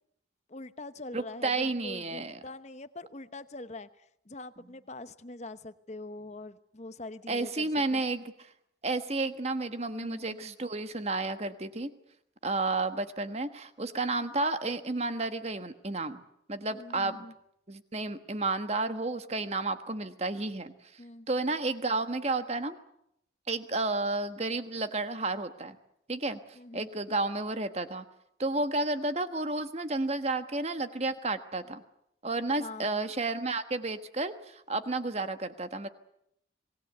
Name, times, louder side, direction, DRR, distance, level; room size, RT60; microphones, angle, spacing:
voice 1, 0.5-8.0 9.9-10.6 16.7-17.3 21.0-21.3 26.5-26.9 32.6-33.1, left 2 dB, 35° left, 12 dB, 0.9 m, -44 dB
voice 2, 1.1-2.4 7.3-8.5 8.8-11.9 12.4-16.2 16.5-17.2 17.7-20.7 21.3-22.8 23.5-25.8 26.1-28.0 28.4-31.8 32.2-35.9, right 2 dB, 35° right, 9 dB, 1.3 m, -31 dB
26.0 x 19.5 x 8.0 m, 0.77 s
head